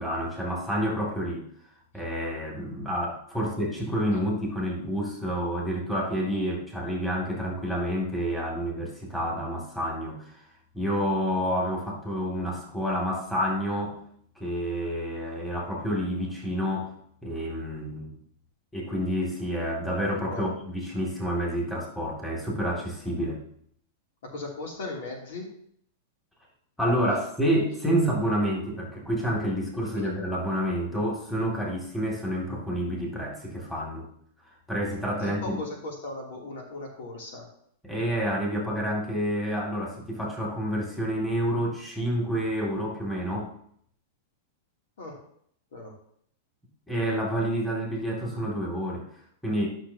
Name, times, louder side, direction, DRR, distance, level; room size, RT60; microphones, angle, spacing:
voice 1, 0.0-1.5 1.9-10.3 10.7-14.0 14.4-16.9 17.2-18.1 18.7-23.4 26.8-34.1 34.7-35.6 37.8-43.5 46.9-49.0 49.4-49.7, equal, 5° left, -3 dB, 2.4 m, -29 dB
voice 2, 24.2-25.4 30.0-30.1 35.2-37.5 45.0-45.2 45.7-45.9, left 2 dB, 75° left, -1 dB, 2.9 m, -37 dB
12.0 x 6.2 x 2.8 m, 0.66 s
hypercardioid pair, 130°, 0 cm